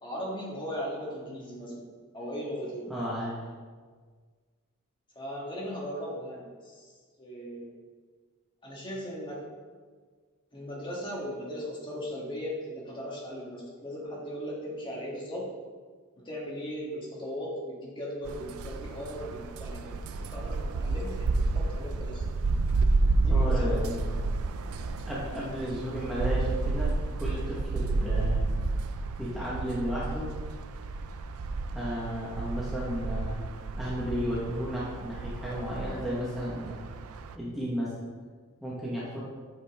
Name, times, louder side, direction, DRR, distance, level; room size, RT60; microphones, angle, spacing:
voice 1, 0.0-2.9 5.1-6.9 7.2-7.7 8.6-9.4 10.5-15.5 16.2-22.2 23.2-23.9, equal, 20° left, -4 dB, 1.5 m, -38 dB
voice 2, 2.9-3.3 23.2-24.0 25.1-28.4 29.2-30.3 31.7-33.4 33.7-36.8 37.3-37.9 38.6-39.2, equal, ahead, -8 dB, 1.1 m, -33 dB
sound 1, 18.2-37.4, right 3 dB, 75° right, 0.4 m, -30 dB
8.0 x 5.3 x 3.5 m, 1.5 s
head